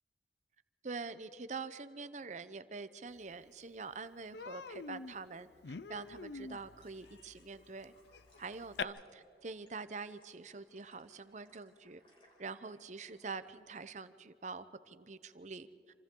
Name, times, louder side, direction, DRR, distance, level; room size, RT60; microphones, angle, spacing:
voice 1, 0.8-7.9 8.4-12.0 12.4-15.7, right 4 dB, 40° right, 12 dB, 0.7 m, -45 dB
Human voice, 3.3-3.4 3.7-3.9 4.3-8.8, left 5 dB, 70° left, 0.5 m, -45 dB
sound 1, 6.2-13.5, equal, 30° left, 5.1 m, -69 dB
27.5 x 26.0 x 3.8 m, 2.7 s
head